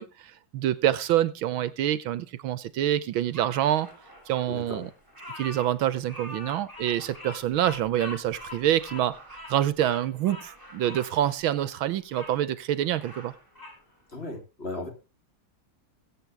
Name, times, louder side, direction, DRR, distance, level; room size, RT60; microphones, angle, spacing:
voice 1, 0.0-3.9 4.3-4.9 5.4-13.3, right 12 dB, 75° right, 1.6 m, -26 dB
Bird vocalization bird call bird song, 3.3-12.3 12.8-13.8, left 1 dB, 10° left, 5.5 m, -44 dB
voice 2, 4.5-4.8 14.1-14.9, left 2 dB, 30° left, 3.4 m, -36 dB
21.0 x 8.7 x 3.4 m
omnidirectional pair, 2.2 m